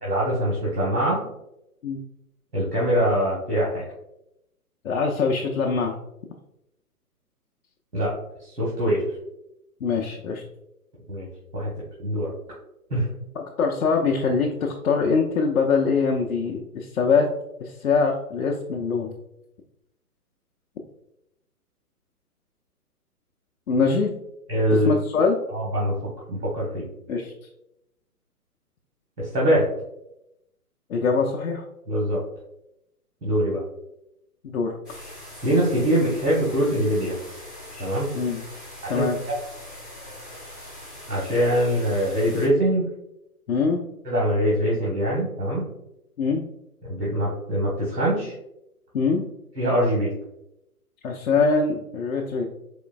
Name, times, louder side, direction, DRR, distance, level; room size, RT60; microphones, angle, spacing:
voice 1, 0.0-1.2 2.5-3.8 7.9-8.1 8.4-9.0 11.1-11.3 11.5-11.7 12.0-12.3 12.9-13.1 24.5-25.0 25.5-25.9 26.3-26.8 29.2-29.7 31.9-32.2 33.2-33.6 35.4-37.2 37.8-38.1 38.8-39.4 41.1-42.9 44.0-45.6 46.8-48.3 49.6-50.1, equal, 90° right, -5 dB, 1.3 m, -23 dB
voice 2, 4.8-5.9 9.8-10.4 13.3-17.3 17.6-19.1 23.7-24.1 24.8-25.4 27.1-27.3 30.9-31.6 34.4-34.8 38.1-38.4 38.9-39.2 43.5-43.8 46.2-46.4 48.9-49.3 51.0-52.5, left 4 dB, 60° left, -1 dB, 0.6 m, -23 dB
sound 1, 34.8-42.5, left 1 dB, 10° right, 0.4 m, -42 dB
4.3 x 3.1 x 2.3 m, 0.83 s
figure-of-eight pair, 125°, 46 cm